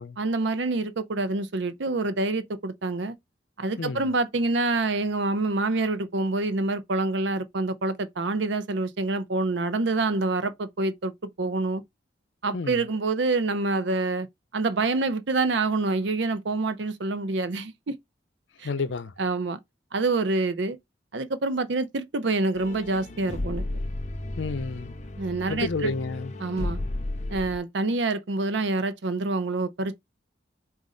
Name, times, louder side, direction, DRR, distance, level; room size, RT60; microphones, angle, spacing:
voice 1, 0.2-3.1 3.6-11.1 11.4-11.8 12.4-14.3 14.5-17.9 18.6-18.7 19.2-19.6 19.9-20.8 21.1-23.6 25.2-25.9 26.4-26.8 27.3-29.9, right 3 dB, 70° right, 0.6 m, -26 dB
voice 2, 3.8-4.1 12.5-12.8 18.6-19.1 24.3-25.0 25.5-26.3, left 4 dB, 80° left, 0.5 m, -31 dB
sound 1, 22.6-27.6, left 1 dB, 40° left, 0.6 m, -33 dB
4.1 x 2.5 x 3.8 m
head